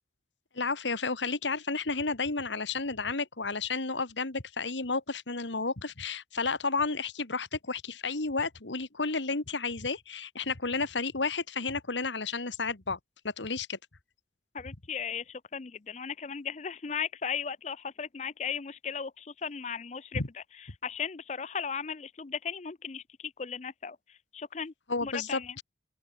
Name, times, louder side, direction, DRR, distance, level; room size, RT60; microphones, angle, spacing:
voice 1, 0.5-13.0 13.2-13.8 20.1-20.3 24.9-25.6, left 4 dB, 85° left, 2.1 m, -32 dB
voice 2, 14.5-20.2 20.8-24.0 24.3-24.7 25.0-25.5, left 6 dB, 40° left, 0.5 m, -36 dB
head